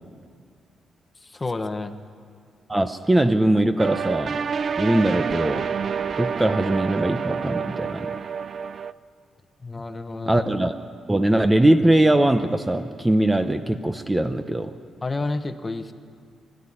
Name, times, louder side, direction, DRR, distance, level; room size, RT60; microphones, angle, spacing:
voice 1, 1.2-1.9 9.6-10.4 15.0-15.9, left 3 dB, 20° left, 8 dB, 1.1 m, -30 dB
voice 2, 2.7-4.4 4.8-5.7 6.2-8.1 10.3-10.8 11.1-14.7, right 1 dB, 10° right, 8 dB, 0.8 m, -21 dB
sound 1, 3.8-8.9, right 6 dB, 45° right, 0.5 m, -28 dB
25.0 x 13.5 x 10.0 m, 2.2 s
cardioid pair, 140°, 0 cm